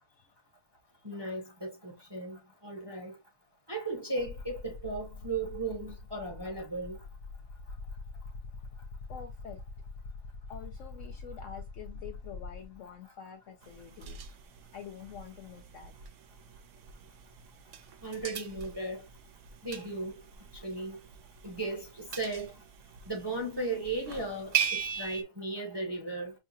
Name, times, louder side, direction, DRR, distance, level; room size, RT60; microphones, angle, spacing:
voice 1, 1.0-3.2 3.7-7.0 18.0-19.0 19.6-20.2 20.6-21.0 21.4-22.5 23.1-26.3, right 2 dB, 20° right, 0.8 m, -36 dB
sound 1, 4.2-12.9 14.1-14.2 16.3-16.4 16.7-19.2, left 3 dB, 85° left, 1.3 m, -45 dB
voice 2, 9.1-9.6 10.5-14.2 14.7-16.1, left 8 dB, 65° left, 0.8 m, -47 dB
sound 2, 13.6-25.2, right 8 dB, 65° right, 0.8 m, -40 dB
5.5 x 2.3 x 2.7 m
omnidirectional pair, 1.7 m